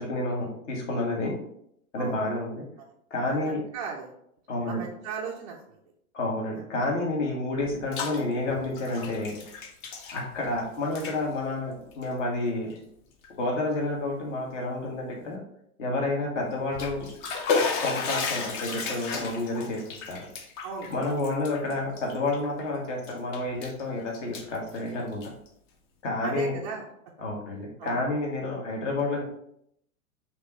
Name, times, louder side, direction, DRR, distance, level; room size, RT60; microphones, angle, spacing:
voice 1, 0.0-1.3 1.9-2.6 3.1-3.6 4.5-4.8 6.1-9.4 10.1-12.7 13.4-15.4 15.8-17.0 17.8-19.8 20.1-20.3 20.9-25.2 26.0-26.6 27.2-29.2, left 2 dB, 55° left, -1 dB, 1.5 m, -29 dB
voice 2, 3.7-4.1 4.6-5.8 6.5-6.6 20.6-21.2 26.2-26.9 27.8-28.0, right 6 dB, 30° right, -3 dB, 0.4 m, -37 dB
Bathtub (filling or washing), 7.6-8.2 8.5-10.6 10.9-11.2 11.9-12.1 12.7-12.8 13.2-13.3 16.5-22.6 23.0-23.8 24.1-25.5, left 4 dB, 35° left, 0.7 m, -33 dB
5.0 x 2.9 x 3.1 m, 0.74 s
hypercardioid pair, 115°, 43 cm